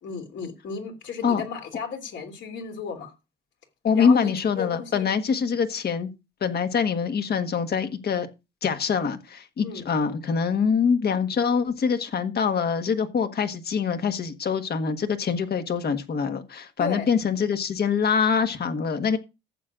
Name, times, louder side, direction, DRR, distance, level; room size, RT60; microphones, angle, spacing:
voice 1, 0.0-3.1 3.9-5.1 9.6-9.9 16.8-17.1, left 6 dB, 70° left, 3.1 m, -34 dB
voice 2, 3.8-6.1 6.4-8.3 8.6-19.2, left 6 dB, 55° left, 1.5 m, -24 dB
14.5 x 7.7 x 2.5 m
cardioid pair, 90°, 20 cm